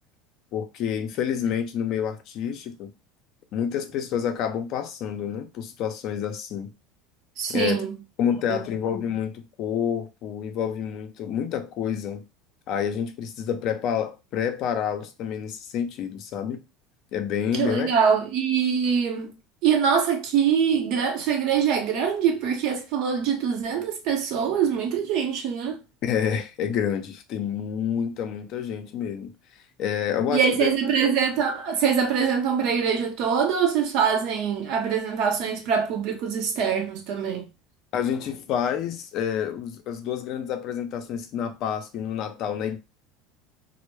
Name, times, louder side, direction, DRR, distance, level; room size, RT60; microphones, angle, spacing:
voice 1, 0.5-2.9 3.5-6.7 7.5-7.8 8.2-12.2 12.7-16.6 17.1-17.9 26.0-29.3 29.8-30.7 37.9-42.8, left 8 dB, 55° left, 0.5 m, -28 dB
voice 2, 7.4-7.9 8.5-8.6 17.6-19.3 19.6-25.8 30.3-37.5, right 7 dB, 60° right, 0.7 m, -24 dB
2.1 x 2.0 x 3.0 m
supercardioid pair, 110°, 0 cm